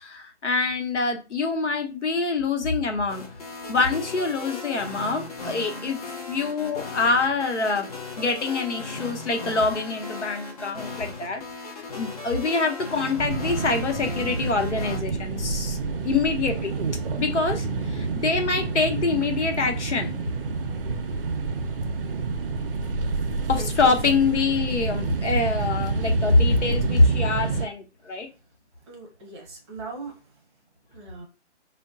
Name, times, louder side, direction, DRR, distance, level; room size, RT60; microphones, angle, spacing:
voice 1, 0.0-3.2 3.7-7.9 8.2-11.4 11.9-15.8 16.0-16.7 17.2-20.1 23.5-28.3, left 3 dB, 80° left, 5 dB, 0.9 m, -25 dB
sound 1, 3.1-15.0, left 3 dB, 35° left, 0.6 m, -37 dB
sound 2, 13.2-27.7, right 4 dB, 55° right, 0.5 m, -28 dB
voice 2, 23.5-24.1 28.9-30.2 30.9-31.2, right 2 dB, 25° right, 0 dB, 0.8 m, -39 dB
3.6 x 2.2 x 2.3 m, 0.29 s
hypercardioid pair, 150°, 35 cm